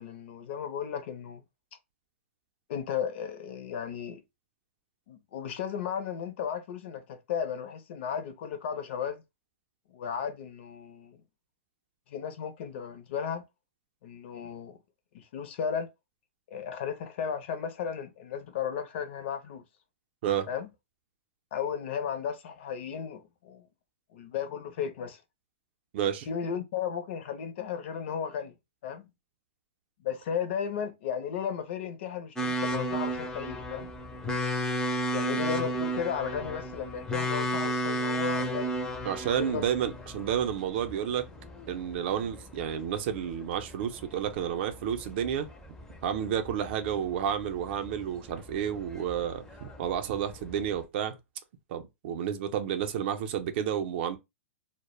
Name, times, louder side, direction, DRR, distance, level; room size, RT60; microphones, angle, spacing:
voice 1, 0.0-1.4 2.7-4.2 5.1-9.2 9.9-11.2 12.1-13.4 14.0-14.8 15.1-15.9 16.5-19.6 20.5-20.7 21.5-23.6 24.1-25.2 26.3-28.5 28.8-29.1 30.0-33.9 35.1-38.8 39.4-39.7, left 7 dB, 55° left, 0.5 m, -35 dB
voice 2, 25.9-26.3 39.0-41.3 41.7-45.5 46.0-51.2 51.7-54.2, right 9 dB, 55° right, 0.4 m, -31 dB
sound 1, 32.4-50.8, equal, 10° left, 0.4 m, -34 dB
2.2 x 2.0 x 3.0 m
hypercardioid pair, 140°, 7 cm